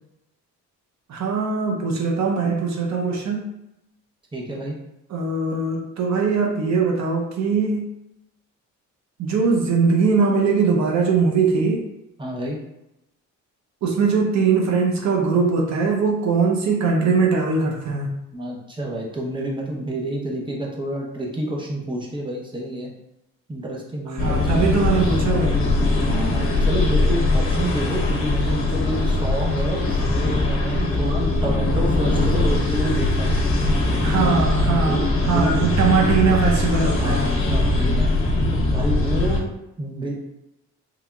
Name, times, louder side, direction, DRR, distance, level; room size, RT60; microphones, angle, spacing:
voice 1, 1.1-3.5 5.1-7.9 9.2-11.8 13.8-18.1 24.2-25.7 34.0-37.3, right 4 dB, 65° right, 0 dB, 0.7 m, -21 dB
voice 2, 4.3-4.8 12.2-12.6 18.3-22.9 23.5-24.6 26.0-33.3 34.0-34.4 34.7-35.5 37.0-38.1 38.5-40.1, right 1 dB, 15° right, -2 dB, 0.9 m, -28 dB
sound 1, 24.2-39.4, left 2 dB, 45° left, 0.9 m, -21 dB
3.6 x 3.4 x 2.3 m, 0.86 s
cardioid pair, 90°, 30 cm